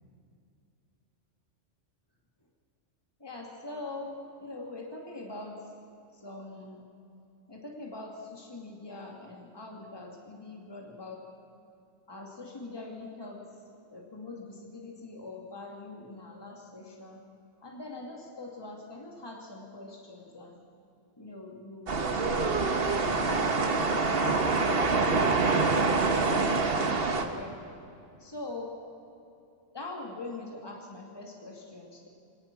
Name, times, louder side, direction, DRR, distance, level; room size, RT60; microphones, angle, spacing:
voice 1, 3.2-5.7 6.1-6.8 7.5-11.3 12.1-13.5 13.9-17.2 17.6-20.6 21.2-22.5 22.9-25.3 25.6-27.8 28.2-28.8 29.7-32.1, left 2 dB, 20° left, 0 dB, 2.5 m, -43 dB
sound 1, 21.9-27.2, right 3 dB, 50° right, 1.6 m, -26 dB
24.5 x 18.5 x 6.1 m, 2.7 s
omnidirectional pair, 1.3 m